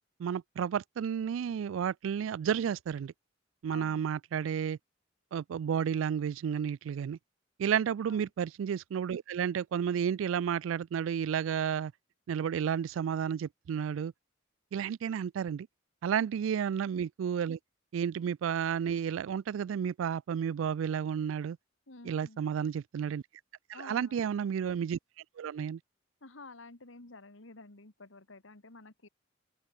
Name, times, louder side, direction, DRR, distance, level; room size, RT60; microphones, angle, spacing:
voice 1, 0.2-3.1 3.6-4.8 5.3-7.2 7.6-11.9 12.3-14.1 14.7-15.7 16.0-17.6 17.9-21.6 22.1-23.2 23.8-25.0 25.4-25.8, right 8 dB, 85° right, 0.3 m, -32 dB
voice 2, 3.7-4.0 8.1-8.3 21.9-22.4 23.7-24.2 26.2-29.1, left 3 dB, 85° left, 2.2 m, -51 dB
open air
head